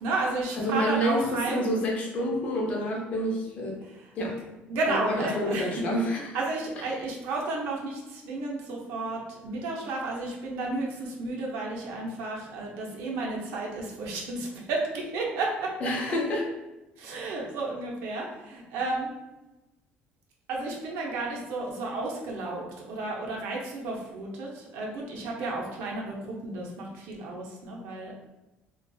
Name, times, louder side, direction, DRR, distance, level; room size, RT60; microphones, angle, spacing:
voice 1, 0.0-1.7 3.8-5.8 6.3-15.7 17.0-19.1 20.5-28.1, right 2 dB, 80° right, -1 dB, 0.6 m, -32 dB
voice 2, 0.6-3.8 4.2-4.4 4.9-6.4 15.8-16.4, equal, 35° left, -1 dB, 0.5 m, -28 dB
2.6 x 2.3 x 2.2 m, 1.0 s
cardioid pair, 170°, 4 cm